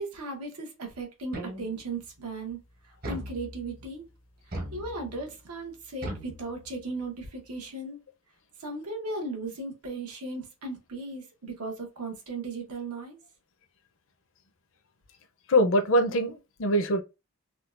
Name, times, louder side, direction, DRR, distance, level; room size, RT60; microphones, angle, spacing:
voice 1, 0.0-4.1 4.5-8.0 8.6-13.2, right 2 dB, 90° right, 1.2 m, -37 dB
sound 1, 1.3-2.0 3.0-3.9 4.5-5.3 6.0-7.0, right 1 dB, 40° right, 0.8 m, -39 dB
voice 2, 15.5-17.0, equal, 60° left, 0.5 m, -23 dB
3.7 x 2.3 x 2.4 m
head